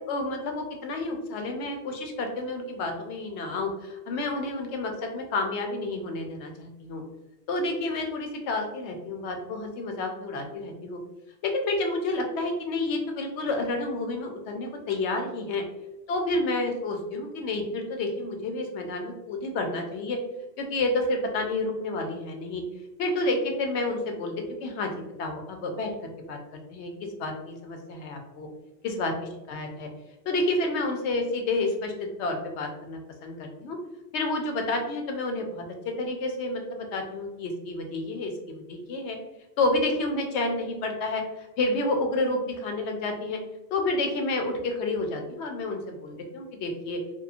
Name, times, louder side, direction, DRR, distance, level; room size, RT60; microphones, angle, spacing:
voice 1, 0.1-7.0 7.5-11.0 11.4-15.6 16.1-20.2 20.6-22.6 23.0-24.3 24.6-24.9 25.2-26.4 26.7-28.5 28.8-29.1 29.5-29.9 30.3-33.8 34.1-39.2 39.6-43.4 43.7-47.0, left 2 dB, 85° left, 3 dB, 0.9 m, -30 dB
2.9 x 2.2 x 2.4 m, 0.99 s
omnidirectional pair, 1.1 m